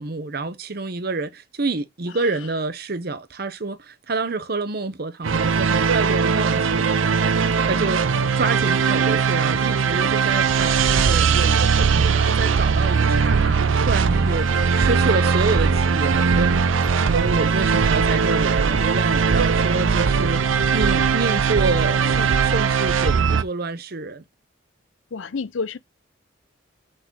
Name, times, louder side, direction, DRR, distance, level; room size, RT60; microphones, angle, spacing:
voice 1, 0.0-7.3 7.6-8.1 8.3-16.6 17.1-24.2, right 3 dB, 50° right, 0.8 m, -28 dB
sound 1, 5.2-23.4, right 5 dB, 85° right, 0.6 m, -19 dB
voice 2, 25.1-25.8, left 4 dB, 75° left, 0.6 m, -28 dB
6.4 x 4.0 x 6.0 m
head